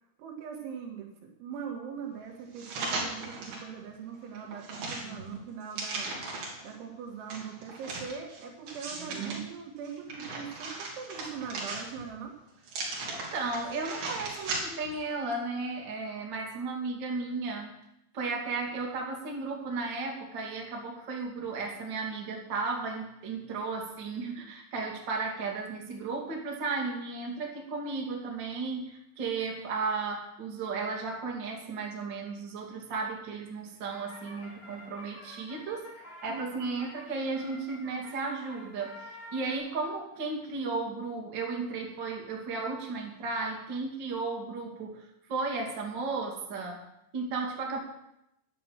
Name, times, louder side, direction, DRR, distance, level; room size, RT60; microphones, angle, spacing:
voice 1, 0.2-6.1 6.6-12.3 36.3-36.4, right 7 dB, 80° right, 1 dB, 4.3 m, -41 dB
sound 1, 2.5-3.7 4.1-6.7 7.3-9.4 9.8-12.2 12.6-14.9 15.3-15.4, right 3 dB, 55° right, 4.5 m, -37 dB
voice 2, 13.1-17.8 18.1-39.0 39.3-46.8 47.1-47.8, right 3 dB, 35° right, 0 dB, 2.1 m, -34 dB
sound 2, 33.4-39.6, left 1 dB, 15° left, 2.3 m, -49 dB
11.0 x 10.5 x 7.4 m, 0.81 s
omnidirectional pair, 5.4 m